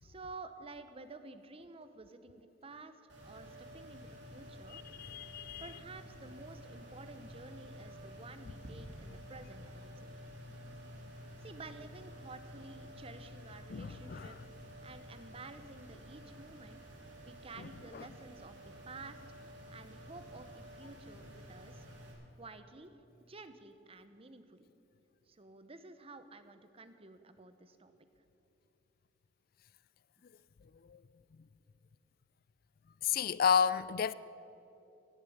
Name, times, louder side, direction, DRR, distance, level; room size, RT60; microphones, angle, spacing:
voice 1, 0.0-4.8 5.6-10.1 11.4-16.8 17.2-19.2 19.7-21.9 22.4-24.7 25.3-27.9, right 3 dB, 30° right, 0.9 m, -52 dB
sound 1, 3.1-22.1, equal, 70° right, 3.6 m, -51 dB
voice 2, 4.7-5.8 13.7-14.4 17.6-18.1 30.9-31.0 33.0-34.1, left 7 dB, 50° left, 0.3 m, -32 dB
17.5 x 8.5 x 8.6 m
head